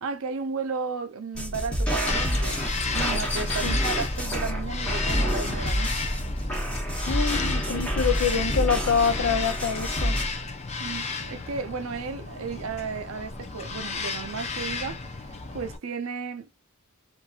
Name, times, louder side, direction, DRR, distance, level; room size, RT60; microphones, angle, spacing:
voice 1, 0.0-2.6 2.9-6.0 10.8-16.5, right 5 dB, 75° right, 0.5 m, -34 dB
sound 1, 1.4-10.2, equal, 5° left, 1.0 m, -28 dB
Bird vocalization bird call bird song, 2.1-15.8, left 4 dB, 30° left, 0.4 m, -33 dB
voice 2, 7.1-10.2, left 6 dB, 80° left, 0.6 m, -26 dB
2.8 x 2.6 x 2.4 m
head